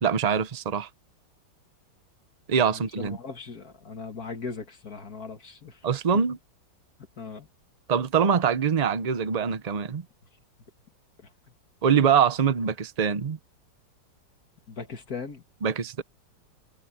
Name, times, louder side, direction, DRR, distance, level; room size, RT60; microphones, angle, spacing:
voice 1, 0.0-0.9 2.5-3.2 5.8-6.4 7.9-10.0 11.8-13.4 15.6-16.0, right 7 dB, 55° right, 0.4 m, -24 dB
voice 2, 2.7-5.9 7.2-7.5 11.2-11.3 14.7-15.4, left 5 dB, 55° left, 2.2 m, -38 dB
omnidirectional pair, 2.0 m